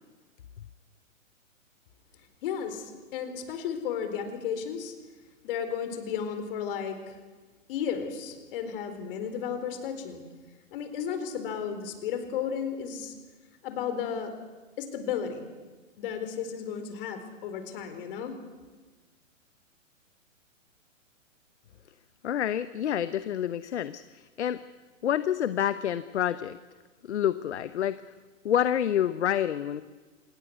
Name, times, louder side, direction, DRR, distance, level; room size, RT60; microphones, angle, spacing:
voice 1, 2.4-4.9 5.4-7.2 7.7-10.2 10.7-13.1 13.6-14.3 14.8-15.5 16.0-18.4, left 7 dB, 45° left, 8 dB, 4.3 m, -33 dB
voice 2, 22.2-24.6 25.0-26.6 27.0-28.0 28.4-29.8, left 10 dB, 60° left, 14 dB, 1.0 m, -28 dB
26.5 x 20.5 x 8.1 m, 1.3 s
figure-of-eight pair, 120°, 39 cm